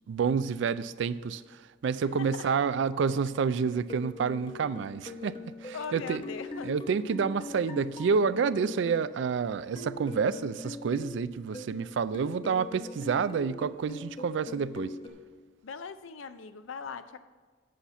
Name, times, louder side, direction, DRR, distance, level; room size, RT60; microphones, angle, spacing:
voice 1, 0.0-1.4 1.8-6.2 6.6-15.0, right 6 dB, 65° right, 16 dB, 0.3 m, -29 dB
voice 2, 2.2-2.6 5.7-6.7 15.6-17.2, left 5 dB, 80° left, 11 dB, 0.5 m, -40 dB
sound 1, 3.4-9.0 9.8-11.9 12.1-15.1, left 2 dB, 25° left, 0.8 m, -42 dB
8.4 x 5.7 x 6.6 m, 1.5 s
head